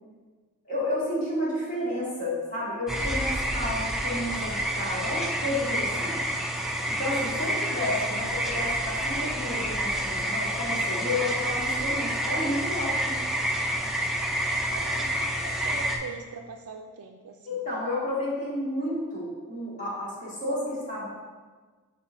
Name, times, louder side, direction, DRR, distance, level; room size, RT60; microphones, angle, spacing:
voice 1, 0.7-6.4 6.9-13.2 17.5-21.1, left 1 dB, 35° left, -7 dB, 1.9 m, -31 dB
sound 1, 2.9-16.0, right 1 dB, ahead, 0.5 m, -28 dB
voice 2, 8.0-8.4 14.7-17.6, right 4 dB, 80° right, 1 dB, 0.4 m, -42 dB
7.9 x 5.2 x 2.6 m, 1.4 s
head